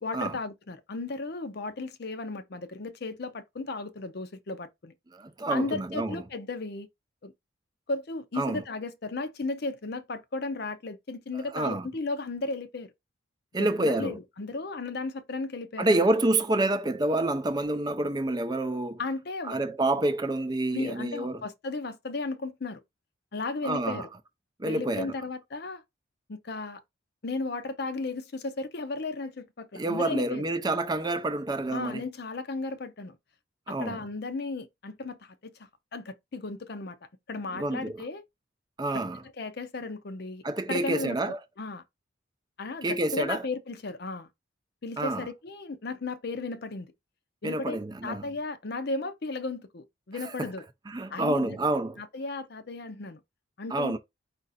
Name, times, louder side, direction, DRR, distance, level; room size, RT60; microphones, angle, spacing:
voice 1, 0.0-4.9 5.5-6.9 7.2-7.3 7.9-12.9 13.6-16.1 19.0-19.6 20.7-22.8 23.3-24.1 24.6-25.8 26.3-26.8 27.2-30.4 31.7-33.2 33.7-37.0 37.3-38.2 38.9-39.0 39.4-41.8 42.6-44.3 44.8-46.9 47.4-50.6 51.1-51.6 52.0-53.2 53.6-54.0, left 3 dB, 55° left, 0.6 m, -35 dB
voice 2, 5.1-6.2 8.4-8.6 11.3-11.9 13.5-14.2 15.8-19.0 19.4-21.4 23.6-24.1 24.6-25.1 29.7-32.0 33.7-34.0 37.5-38.0 38.8-39.2 40.4-41.4 42.8-43.4 45.0-45.3 47.4-48.3 50.1-50.5 50.9-52.0 53.7-54.0, right 2 dB, 20° right, 0.5 m, -28 dB
5.1 x 2.5 x 4.1 m
head